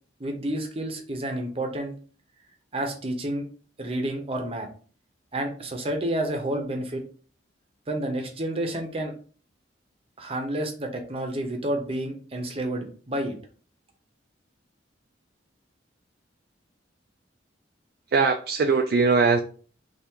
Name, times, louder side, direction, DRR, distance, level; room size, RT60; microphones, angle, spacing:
voice 1, 0.2-1.9 2.7-3.5 3.8-4.7 5.3-7.0 7.9-9.1 10.2-13.4, right 1 dB, 30° right, 4 dB, 0.7 m, -30 dB
voice 2, 18.1-19.4, right 4 dB, 55° right, 5 dB, 0.3 m, -21 dB
3.4 x 2.4 x 4.4 m, 0.41 s
head